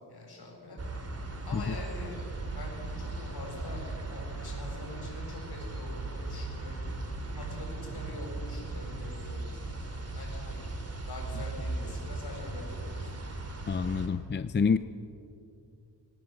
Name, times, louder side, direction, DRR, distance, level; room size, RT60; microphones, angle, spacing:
voice 1, 0.1-0.8 1.4-2.2 2.5-6.8 7.2-10.7 11.1-12.9, left 2 dB, 60° left, 0 dB, 7.9 m, -44 dB
sound 1, 0.8-14.1, right 2 dB, 35° right, 3.2 m, -37 dB
voice 2, 13.7-14.8, left 5 dB, 25° left, 12 dB, 0.5 m, -27 dB
25.5 x 18.0 x 7.7 m, 2.6 s
wide cardioid pair, 120°, 44 cm